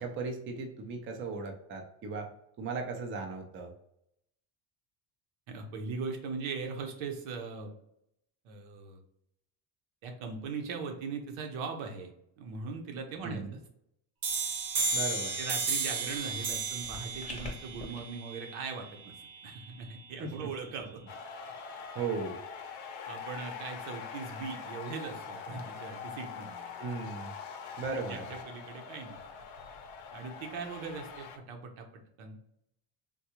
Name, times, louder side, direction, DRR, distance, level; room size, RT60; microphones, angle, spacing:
voice 1, 0.0-2.3 2.6-3.7 13.2-13.6 14.9-15.4 20.2-20.5 21.9-22.4 26.8-27.3 27.8-28.2, right 4 dB, 25° right, 3 dB, 0.4 m, -37 dB
voice 2, 5.5-7.7 8.4-9.0 10.0-12.1 12.4-13.4 15.4-19.1 19.4-21.0 23.1-26.7 27.6-29.2 30.1-32.4, right 4 dB, 90° right, 3 dB, 0.9 m, -40 dB
sound 1, 14.2-19.6, right 4 dB, 50° right, 0.8 m, -34 dB
sound 2, 16.4-18.0, left 3 dB, 15° left, 0.7 m, -46 dB
sound 3, 21.1-31.4, left 6 dB, 75° left, 0.7 m, -43 dB
3.6 x 2.3 x 2.9 m, 0.76 s
cardioid pair, 155°, 48 cm